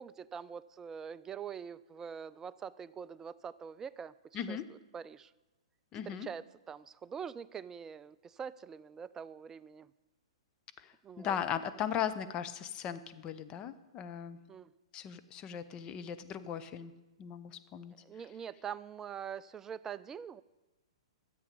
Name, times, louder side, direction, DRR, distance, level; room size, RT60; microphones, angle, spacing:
voice 1, 0.0-5.3 6.1-9.9 11.0-11.4 14.5-14.7 18.0-20.4, right 7 dB, 15° right, 15 dB, 0.3 m, -44 dB
voice 2, 4.3-4.6 5.9-6.3 10.8-14.4 14.9-16.9 17.2-17.9, left 9 dB, 30° left, 11 dB, 0.7 m, -38 dB
13.5 x 7.9 x 5.3 m, 1.1 s
hypercardioid pair, 120°, 3 cm